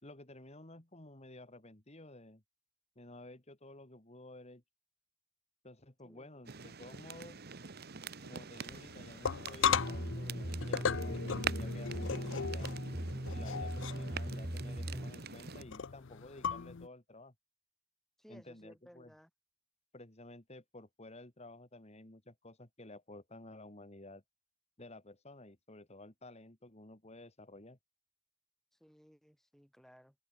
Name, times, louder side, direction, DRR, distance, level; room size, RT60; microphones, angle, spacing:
voice 1, 0.0-2.4 3.0-4.6 5.6-7.5 8.2-12.7 13.3-17.3 18.3-19.1 19.9-24.2 24.8-27.8, left 2 dB, 30° left, 2.4 m, -53 dB
voice 2, 6.0-6.4 18.2-19.3 28.7-30.2, equal, ahead, 7.8 m, -60 dB
sound 1, 6.5-15.6, right 6 dB, 50° right, 1.2 m, -45 dB
sound 2, 8.7-16.9, left 7 dB, 60° left, 0.6 m, -37 dB
sound 3, 9.8-15.1, right 1 dB, 25° right, 1.7 m, -40 dB
open air
head